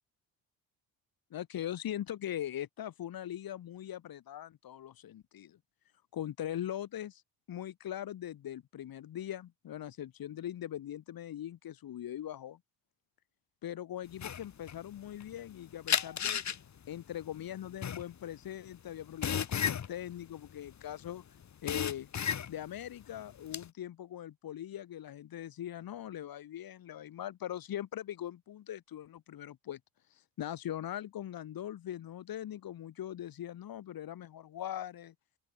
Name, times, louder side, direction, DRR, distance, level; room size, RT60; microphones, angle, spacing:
voice 1, 1.3-5.6 6.1-7.2 7.5-12.6 13.6-16.4 16.9-21.2 21.6-22.1 22.5-29.8 30.4-35.1, left 11 dB, 65° left, 6.9 m, -41 dB
sound 1, 14.2-15.5 15.9-21.1 21.4-22.8 23.2-23.7, left 8 dB, 50° left, 3.0 m, -33 dB
open air
cardioid pair, 95°, 37 cm